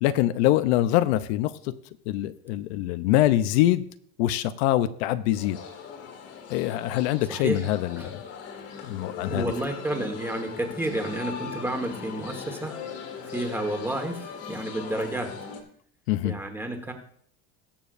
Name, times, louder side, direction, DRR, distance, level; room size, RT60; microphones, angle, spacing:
voice 1, 0.0-1.8 2.1-3.8 4.2-5.6 6.5-8.2 8.8-9.5 16.1-16.3, left 14 dB, 85° left, 13 dB, 0.7 m, -24 dB
sound 1, 5.3-15.6, left 6 dB, 50° left, 2.0 m, -39 dB
voice 2, 7.3-7.6 8.0-8.1 9.3-12.8 13.3-15.3 16.2-16.9, right 1 dB, 5° right, 4 dB, 1.4 m, -31 dB
20.0 x 7.0 x 2.6 m, 0.62 s
cardioid pair, 145°, 32 cm